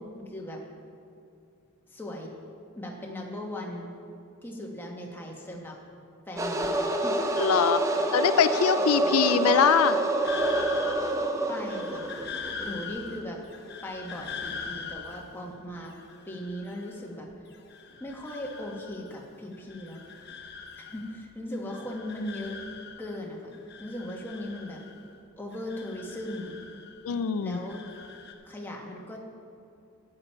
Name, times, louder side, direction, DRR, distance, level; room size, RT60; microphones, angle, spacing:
voice 1, 0.1-0.6 1.9-2.3 2.7-3.9 4.4-5.8 6.3-6.7 7.0-7.2 9.0-9.1 11.5-12.1 12.6-13.4 13.8-15.9 16.2-17.3 18.0-20.0 20.9-22.6 23.0-24.8 25.4-26.6 27.4-27.8 28.4-29.2, left 1 dB, 10° left, -1 dB, 1.2 m, -38 dB
sound 1, 6.4-13.0, right 2 dB, 15° right, 0.5 m, -27 dB
voice 2, 7.4-7.8 8.1-10.0 27.0-27.6, left 7 dB, 90° left, 12 dB, 0.4 m, -23 dB
sound 2, 10.2-17.2 17.5-19.2 19.5-21.3 21.5-23.2 23.5-25.2 25.5-27.2 27.5-28.3, left 6 dB, 50° left, 0.9 m, -42 dB
11.5 x 8.9 x 4.4 m, 2.6 s
head